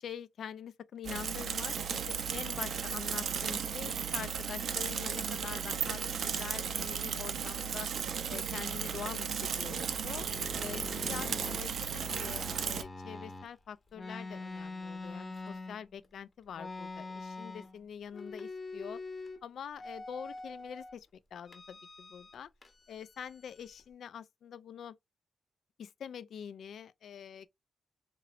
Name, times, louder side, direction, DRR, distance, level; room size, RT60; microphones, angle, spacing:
voice 1, 0.0-7.9 8.3-10.3 10.6-19.0 19.4-22.5 22.9-25.0 25.8-27.5, left 8 dB, 75° left, 0.3 m, -45 dB
Bicycle / Mechanisms, 1.0-12.8, right 7 dB, 65° right, 0.4 m, -35 dB
sound 1, 9.9-13.5 13.9-16.1 16.5-17.8 18.1-19.4 19.8-20.9 21.5-22.4 22.6-23.8, left 3 dB, 35° left, 0.8 m, -44 dB
3.0 x 2.9 x 2.4 m
cardioid pair, 105°, 0 cm